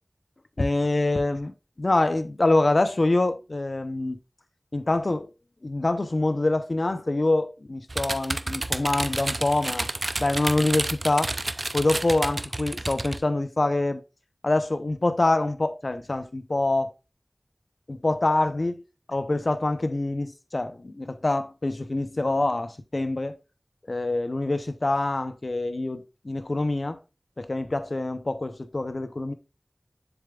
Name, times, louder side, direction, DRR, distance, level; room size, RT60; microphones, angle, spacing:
voice 1, 0.6-4.2 4.7-5.3 5.6-9.9 10.2-11.3 11.7-14.0 14.4-16.9 17.9-18.8 19.1-23.4 23.9-27.0 27.4-29.3, left 2 dB, 65° left, 0.7 m, -25 dB
sound 1, 7.9-13.2, right 2 dB, 60° right, 0.5 m, -30 dB
7.1 x 6.9 x 2.4 m
wide cardioid pair, 40°, 0 cm